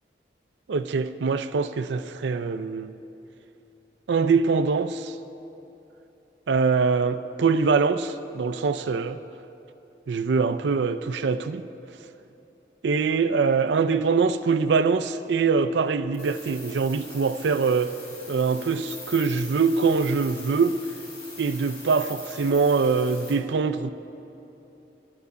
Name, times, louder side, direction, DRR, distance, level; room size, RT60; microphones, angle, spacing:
voice 1, 0.7-3.0 4.1-5.2 6.5-9.2 10.1-11.6 12.8-17.9 18.3-20.8 21.4-23.9, right 5 dB, 90° right, 0.4 m, -23 dB
sound 1, 16.1-23.4, left 2 dB, 85° left, 3.7 m, -42 dB
12.5 x 11.0 x 6.8 m
head